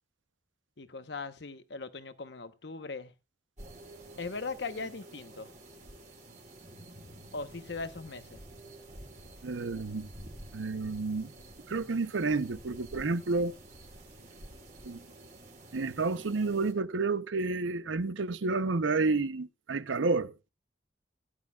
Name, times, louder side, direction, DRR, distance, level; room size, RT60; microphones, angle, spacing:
voice 1, 0.8-3.1 4.2-5.5 7.3-8.4, left 4 dB, 65° left, 0.9 m, -39 dB
sound 1, 3.6-16.7, right 1 dB, 40° right, 2.7 m, -50 dB
voice 2, 9.4-10.1 10.5-11.3 11.7-13.5 14.8-15.0 15.7-20.3, right 3 dB, 85° right, 0.7 m, -30 dB
17.0 x 10.5 x 2.3 m
head